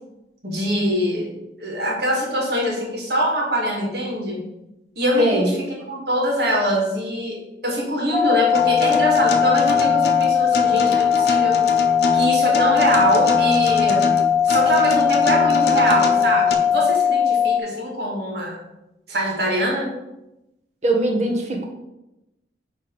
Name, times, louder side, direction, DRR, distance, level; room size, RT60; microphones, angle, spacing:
voice 1, 0.4-1.3 1.6-4.4 5.0-5.6 5.9-11.6 12.1-14.1 14.4-18.6 19.1-19.9, equal, 65° right, -2 dB, 2.0 m, -23 dB
voice 2, 5.2-5.5 20.8-21.7, right 2 dB, 40° right, 1 dB, 1.2 m, -20 dB
sound 1, 8.1-17.6, left 8 dB, 10° left, 0.4 m, -19 dB
Acoustic guitar, 8.5-16.5, left 2 dB, 60° left, 0.7 m, -26 dB
9.2 x 3.4 x 4.7 m, 0.93 s
head